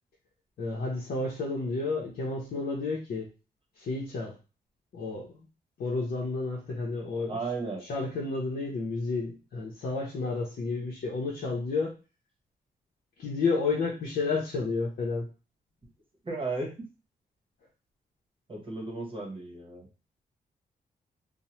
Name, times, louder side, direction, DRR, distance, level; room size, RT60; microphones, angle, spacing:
voice 1, 0.6-3.3 3.8-4.4 4.9-5.4 5.8-7.4 7.9-11.9 13.2-15.3, left 3 dB, 75° left, -3 dB, 0.7 m, -31 dB
voice 2, 7.3-7.8 16.2-16.7 18.5-19.9, right 3 dB, 35° right, 0 dB, 0.9 m, -34 dB
3.0 x 2.1 x 2.8 m, 0.33 s
cardioid pair, 90°, 16 cm